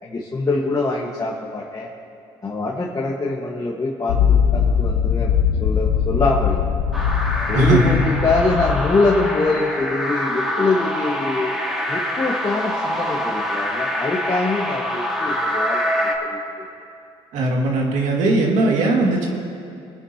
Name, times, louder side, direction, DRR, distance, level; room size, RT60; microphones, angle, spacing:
voice 1, 0.0-1.9 2.4-5.3 5.6-6.6 7.5-11.5 11.9-16.7, left 3 dB, 30° left, -3 dB, 1.6 m, -23 dB
sound 1, 4.1-9.3, left 7 dB, 85° left, 0.8 m, -21 dB
sound 2, 6.9-16.2, equal, ahead, 2.2 m, -25 dB
voice 2, 7.5-8.0 17.3-19.3, right 2 dB, 75° right, 0 dB, 2.3 m, -19 dB
23.5 x 9.8 x 2.9 m, 2.8 s
supercardioid pair, 70°, 13 cm